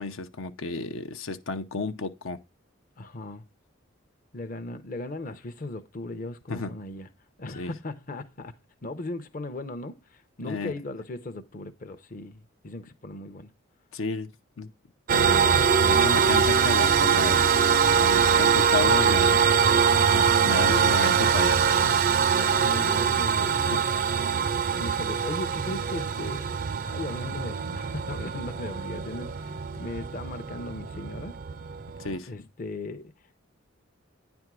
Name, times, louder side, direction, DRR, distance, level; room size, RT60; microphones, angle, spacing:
voice 1, 0.0-2.4 6.5-6.7 7.6-7.7 10.5-10.7 13.9-14.3 14.6-14.7 15.1-17.6 18.0-19.3 20.1-22.0 23.7-23.8 32.0-32.3, left 3 dB, 75° left, 0.7 m, -32 dB
voice 2, 3.0-3.4 4.3-7.1 7.4-8.6 8.8-13.5 19.0-21.0 22.4-23.7 24.8-26.5 26.8-31.4 32.3-33.3, left 2 dB, 40° left, 0.7 m, -37 dB
sound 1, 15.1-32.2, right 6 dB, 45° right, 0.4 m, -23 dB
9.8 x 3.5 x 6.1 m
head